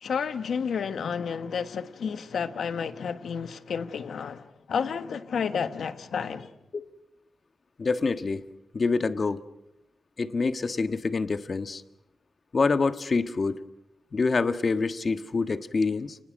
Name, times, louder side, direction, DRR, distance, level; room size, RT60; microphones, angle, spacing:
voice 1, 0.0-6.5, left 6 dB, 85° left, 1.3 m, -31 dB
voice 2, 7.8-8.4 8.7-9.4 10.2-11.8 12.5-13.6 14.1-16.2, left 4 dB, 50° left, 1.4 m, -26 dB
30.0 x 20.0 x 6.4 m
cardioid pair, 80°, 0 cm